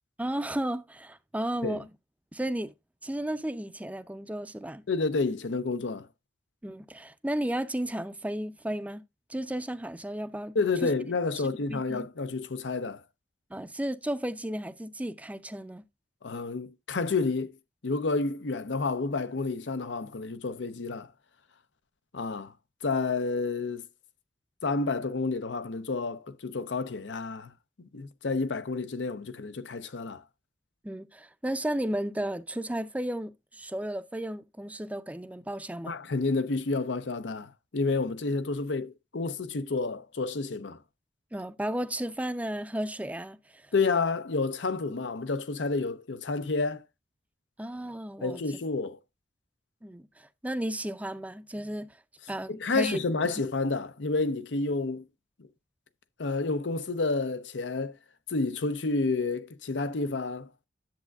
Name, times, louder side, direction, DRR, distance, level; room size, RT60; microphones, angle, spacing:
voice 1, 0.2-1.9 2.3-2.7 3.0-4.8 6.6-9.0 9.3-10.6 10.8-10.9 11.7-12.1 13.5-15.8 30.8-36.0 41.3-43.7 47.6-48.4 49.8-52.0 52.3-53.0, right 1 dB, 10° right, 0.5 m, -33 dB
voice 2, 4.9-6.1 10.5-13.0 16.2-17.6 17.8-21.1 22.1-22.5 22.8-23.8 24.6-27.5 27.9-30.2 35.9-40.8 43.7-46.8 48.2-49.0 52.5-55.1 56.2-58.0 58.3-60.5, left 3 dB, 75° left, 0.7 m, -30 dB
10.5 x 7.4 x 2.3 m
head